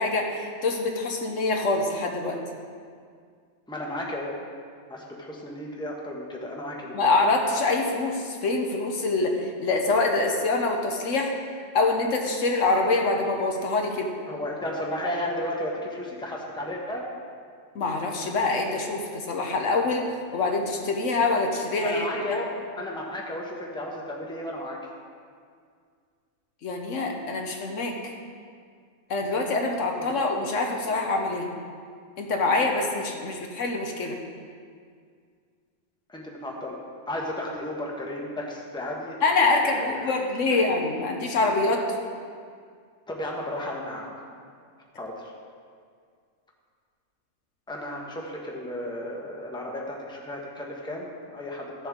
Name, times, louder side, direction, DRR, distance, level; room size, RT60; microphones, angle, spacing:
voice 1, 0.0-2.4 6.9-11.3 11.7-14.1 17.7-20.1 20.3-22.4 26.6-27.9 29.1-31.5 32.2-34.2 39.2-41.9, left 3 dB, 75° left, 2 dB, 1.3 m, -25 dB
voice 2, 3.7-4.3 4.9-7.1 14.3-17.1 21.8-24.8 30.1-30.2 36.1-39.2 39.5-40.2 40.5-40.6 43.1-44.1 45.0-45.3 47.7-51.9, left 1 dB, 5° left, -2 dB, 1.1 m, -34 dB
14.0 x 7.0 x 3.7 m, 2.1 s
omnidirectional pair, 1.3 m